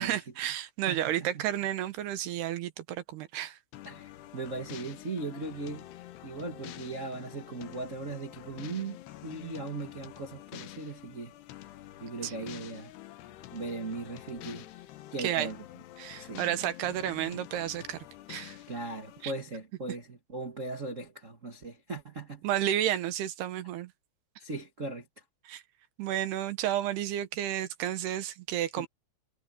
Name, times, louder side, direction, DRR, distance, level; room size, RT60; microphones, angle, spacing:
voice 1, 0.0-3.6 12.2-12.3 15.2-15.5 16.0-18.6 19.2-19.3 22.4-23.9 25.5-25.6 26.0-28.9, right 12 dB, 75° right, 3.1 m, -32 dB
voice 2, 0.9-1.4 3.8-5.9 6.2-11.3 12.0-12.9 13.5-14.7 15.1-15.6 16.2-16.4 18.7-22.4 24.4-25.0 28.8-28.9, right 3 dB, 45° right, 0.9 m, -38 dB
sound 1, 3.7-19.3, left 14 dB, 75° left, 3.2 m, -47 dB
omnidirectional pair, 4.8 m